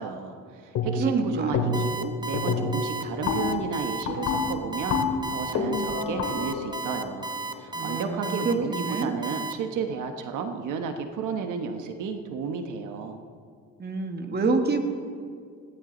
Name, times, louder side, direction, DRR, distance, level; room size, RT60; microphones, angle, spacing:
voice 1, 0.0-5.0 5.3-13.2, right 5 dB, 85° right, 5 dB, 1.4 m, -32 dB
sound 1, 0.8-1.2 1.5-2.0 2.3-8.2, left 4 dB, 85° left, 2.7 m, -29 dB
voice 2, 1.0-1.6 7.7-9.1 13.8-14.8, right 4 dB, 35° right, 5 dB, 1.8 m, -27 dB
Alarm, 1.7-9.5, right 3 dB, 15° right, 1.0 m, -34 dB
21.0 x 17.0 x 4.0 m, 2.2 s
cardioid pair, 125°, 30 cm